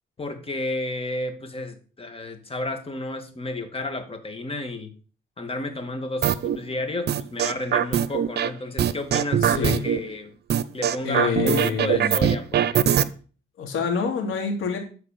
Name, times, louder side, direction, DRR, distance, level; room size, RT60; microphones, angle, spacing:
voice 1, 0.2-4.9 5.4-10.3 10.7-13.1, left 2 dB, 30° left, 7 dB, 2.3 m, -32 dB
sound 1, 6.2-6.6 7.1-8.5 8.8-10.0 10.5-13.0, right 9 dB, 55° right, 0.8 m, -21 dB
voice 2, 9.4-9.8 11.0-12.1 13.6-14.8, left 5 dB, 85° left, 3 dB, 3.2 m, -26 dB
12.5 x 4.8 x 6.8 m, 0.39 s
cardioid pair, 90°, 20 cm